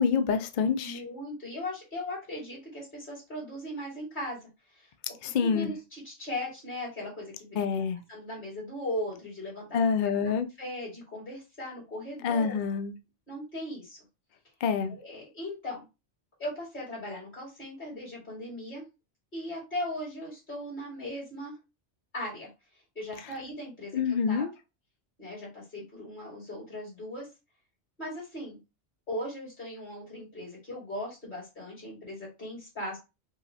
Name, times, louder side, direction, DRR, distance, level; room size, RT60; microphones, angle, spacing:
voice 1, 0.0-1.0 5.2-5.7 7.6-8.0 9.7-10.5 12.2-12.9 14.6-14.9 23.9-24.5, left 6 dB, 60° left, 0.5 m, -26 dB
voice 2, 0.8-4.4 4.8-4.9 5.4-7.6 8.1-9.7 10.6-12.5 13.3-14.0 15.0-15.8 16.4-18.8 19.3-21.5 22.1-22.5 22.9-24.0 24.3-24.5 25.2-27.3 28.0-28.6 29.1-33.0, left 1 dB, 45° left, 2.3 m, -38 dB
5.5 x 2.0 x 2.7 m
omnidirectional pair, 1.2 m